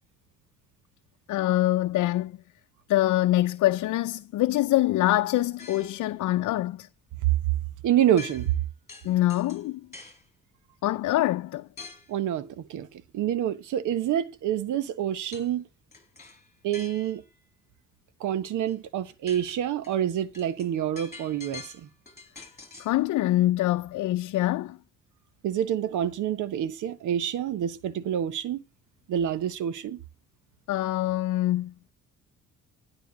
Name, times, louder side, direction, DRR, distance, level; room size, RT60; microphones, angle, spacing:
voice 1, 1.3-2.4 2.9-6.9 9.0-9.9 10.8-11.7 22.8-24.8 30.7-31.7, left 15 dB, 80° left, 0.6 m, -24 dB
sound 1, 5.6-6.1 8.2-8.6 8.9-10.3 11.8-12.2 15.3-15.5 15.9-17.3 18.7-18.8 19.1-23.0, left 4 dB, 25° left, 6.0 m, -46 dB
voice 2, 7.8-8.5 12.1-12.9 13.1-15.7 16.6-17.2 18.2-21.9 25.4-28.6 29.1-30.0, right 10 dB, 80° right, 1.2 m, -27 dB
12.0 x 11.0 x 4.0 m
cardioid pair, 90°, 30 cm